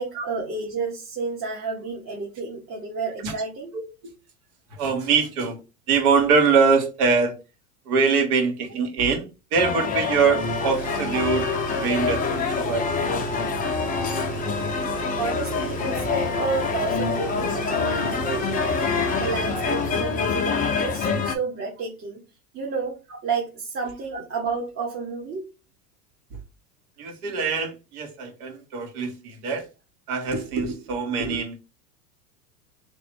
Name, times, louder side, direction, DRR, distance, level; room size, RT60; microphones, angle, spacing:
voice 1, 0.0-3.8 15.2-18.8 19.2-22.2 22.5-23.0 23.2-25.4, right 4 dB, 30° right, 1.2 m, -30 dB
voice 2, 3.7-4.1 4.8-5.6 5.9-7.3 7.9-11.5 11.8-12.8 27.0-29.6 30.1-31.6, right 5 dB, 65° right, 1.7 m, -23 dB
sound 1, 9.5-21.3, left 5 dB, 20° left, 0.6 m, -26 dB
sound 2, 10.4-20.0, right 5 dB, 90° right, 1.2 m, -34 dB
3.2 x 3.0 x 4.3 m
hypercardioid pair, 105°, 47 cm